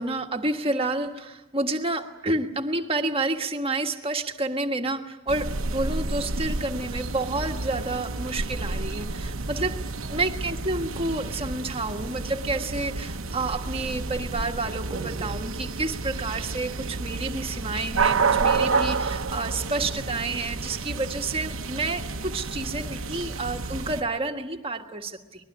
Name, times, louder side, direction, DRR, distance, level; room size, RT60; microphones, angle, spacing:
voice 1, 0.0-25.5, right 2 dB, 25° right, 4 dB, 1.6 m, -29 dB
sound 1, 5.3-24.0, right 4 dB, 70° right, 1.0 m, -30 dB
24.0 x 21.0 x 9.8 m, 1.1 s
head